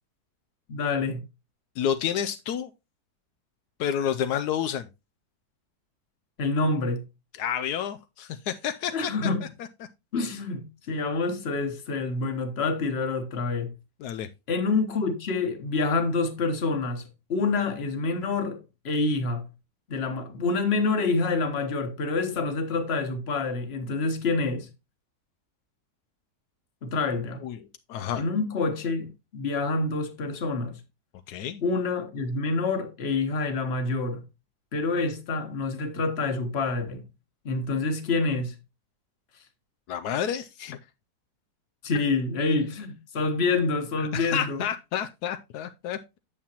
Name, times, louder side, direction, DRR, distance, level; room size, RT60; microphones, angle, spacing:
voice 1, 0.7-1.2 6.4-7.0 8.9-9.5 10.1-13.7 14.5-18.6 18.8-19.5 19.9-24.7 26.8-27.4 28.2-30.8 31.6-34.2 34.7-37.0 37.4-38.5 41.8-44.6, left 3 dB, 45° left, 1.3 m, -27 dB
voice 2, 1.8-2.7 3.8-4.9 7.3-9.1 14.0-14.3 27.4-27.6 27.9-28.2 31.3-31.6 39.9-40.8 44.0-46.2, left 9 dB, 80° left, 1.1 m, -30 dB
8.6 x 7.1 x 2.9 m
omnidirectional pair, 1.7 m